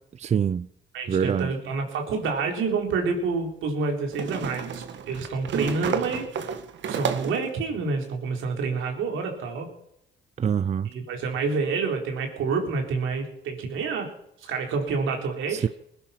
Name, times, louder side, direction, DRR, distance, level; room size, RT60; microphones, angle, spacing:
voice 1, 0.2-0.7 1.1-1.5 10.4-10.9 15.5-15.7, right 7 dB, 35° right, 0.5 m, -24 dB
voice 2, 0.9-6.3 6.9-9.7 10.9-14.1 14.4-15.7, right 4 dB, 85° right, 4.1 m, -28 dB
Empty Plastic Bottle Falling, 2.2-2.3 4.1-7.5, right 7 dB, 70° right, 1.8 m, -31 dB
21.0 x 11.5 x 5.9 m
cardioid pair, 90°, 20 cm